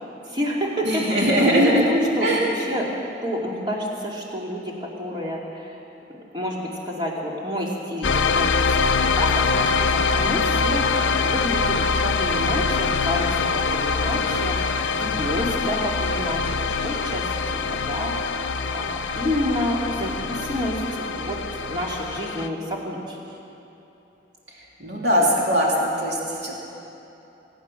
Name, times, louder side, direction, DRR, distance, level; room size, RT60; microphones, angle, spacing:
voice 1, 0.2-2.9 3.2-5.8 6.3-8.5 8.8-21.4 21.7-23.2 25.2-25.3, left 1 dB, 25° right, -3 dB, 2.4 m, -29 dB
voice 2, 0.8-1.8 2.2-2.4 24.8-26.6, equal, 60° right, -3 dB, 3.0 m, -20 dB
sound 1, 8.0-22.5, left 4 dB, 80° left, 0.6 m, -24 dB
24.0 x 9.3 x 6.3 m, 3.0 s
head